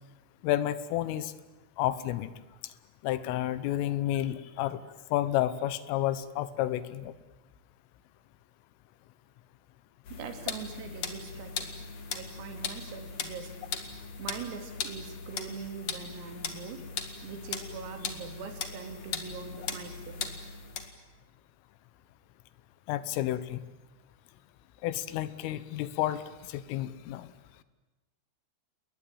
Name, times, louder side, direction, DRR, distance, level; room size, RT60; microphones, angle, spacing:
voice 1, 0.4-1.3 1.8-2.3 3.0-4.8 5.1-7.1 22.9-23.6 24.8-26.2 26.5-27.3, left 13 dB, 80° left, 15 dB, 3.5 m, -30 dB
sound 1, 10.0-20.9, left 6 dB, 55° left, 1.9 m, -39 dB
voice 2, 10.1-13.5 14.2-16.8 17.2-20.3, right 6 dB, 85° right, 6 dB, 5.5 m, -42 dB
29.5 x 20.5 x 9.2 m, 1.1 s
omnidirectional pair, 5.9 m